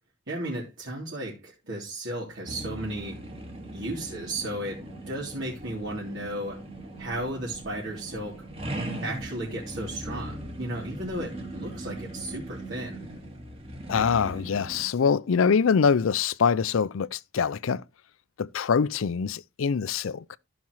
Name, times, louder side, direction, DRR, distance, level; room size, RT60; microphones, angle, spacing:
voice 1, 0.3-3.2 3.7-6.7 7.0-8.4 9.0-13.0, right 1 dB, 65° right, 3.2 m, -34 dB
sound 1, 2.5-14.8, right 1 dB, 25° right, 2.1 m, -39 dB
voice 2, 13.9-17.8 18.4-20.2, left 6 dB, 75° left, 0.4 m, -24 dB
14.5 x 6.0 x 3.1 m
head